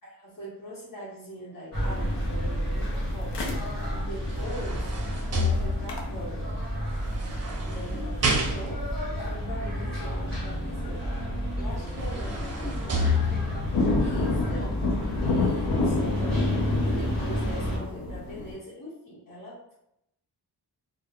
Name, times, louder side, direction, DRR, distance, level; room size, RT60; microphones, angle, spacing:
voice 1, 0.0-4.9 5.3-6.6 7.6-11.1 11.5-12.3 13.0-13.3 14.0-14.7 15.2-19.7, right 1 dB, 50° left, -8 dB, 1.2 m, -41 dB
sound 1, 1.7-17.8, equal, ahead, 1.3 m, -31 dB
sound 2, 1.8-9.8 10.1-10.2 10.9-11.2 11.5-11.9 12.3-12.4 12.7-18.6, left 3 dB, 80° left, 0.6 m, -30 dB
sound 3, 4.2-6.2 7.0-9.0 11.3-11.4 11.7-13.7 14.3-14.4, left 2 dB, 40° right, 0.5 m, -30 dB
voice 2, 11.6-15.3, equal, 25° left, 1 dB, 0.4 m, -44 dB
2.3 x 2.1 x 3.6 m, 0.81 s
wide cardioid pair, 125°, 42 cm